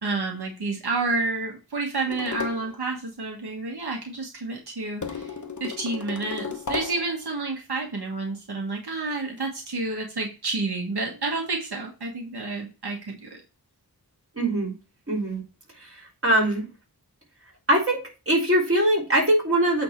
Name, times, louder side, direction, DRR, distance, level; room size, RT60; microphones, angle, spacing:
voice 1, 0.0-5.3 5.6-13.4, right 3 dB, 85° right, 1 dB, 1.5 m, -30 dB
sound 1, 2.1-2.8 5.0-7.2, left 5 dB, 50° left, 1.2 m, -34 dB
voice 2, 14.4-14.7 15.1-15.4 15.8-15.9 16.2-16.6 17.7-19.8, right 1 dB, 35° right, -3 dB, 3.8 m, -22 dB
8.7 x 3.6 x 4.5 m, 0.31 s
wide cardioid pair, 65°, 38 cm